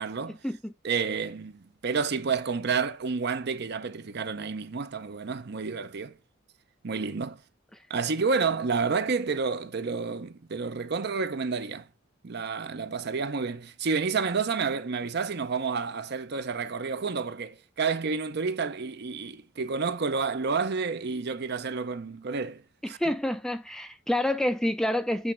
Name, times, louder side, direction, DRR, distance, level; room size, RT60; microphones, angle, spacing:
voice 1, 0.0-0.4 0.8-6.2 6.8-7.4 7.9-11.9 12.2-23.0, right 5 dB, 55° right, 0.6 m, -30 dB
voice 2, 22.8-25.3, left 1 dB, 5° left, 0.3 m, -28 dB
8.1 x 3.1 x 4.4 m
head